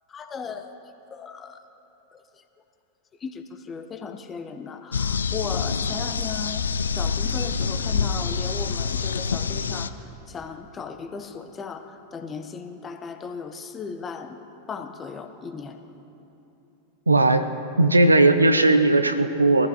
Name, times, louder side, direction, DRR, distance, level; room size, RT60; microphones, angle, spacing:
voice 1, 0.1-0.8 1.1-1.6 2.1-2.4 3.2-6.6 6.9-14.4 14.7-15.8, left 5 dB, 20° left, 7 dB, 0.9 m, -36 dB
sound 1, 4.9-9.9, left 5 dB, 70° left, 0.4 m, -26 dB
voice 2, 17.1-17.5 17.8-19.7, right 2 dB, 80° right, 10 dB, 0.6 m, -17 dB
21.0 x 14.5 x 2.9 m, 3.0 s
figure-of-eight pair, 90°, 0 cm